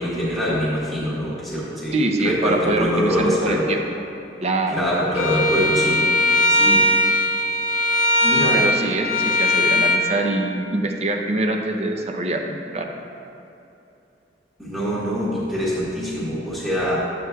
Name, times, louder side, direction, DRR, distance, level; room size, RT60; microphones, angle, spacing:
voice 1, 0.0-2.0 2.2-3.7 4.7-6.1 6.5-6.9 8.2-8.6 14.6-17.0, equal, ahead, -9 dB, 1.3 m, -23 dB
voice 2, 1.9-3.8 4.4-4.8 8.5-12.9, right 2 dB, 40° right, 3 dB, 0.6 m, -24 dB
Bowed string instrument, 5.1-10.0, left 1 dB, 40° left, 0.8 m, -19 dB
11.0 x 7.7 x 2.3 m, 2.8 s
head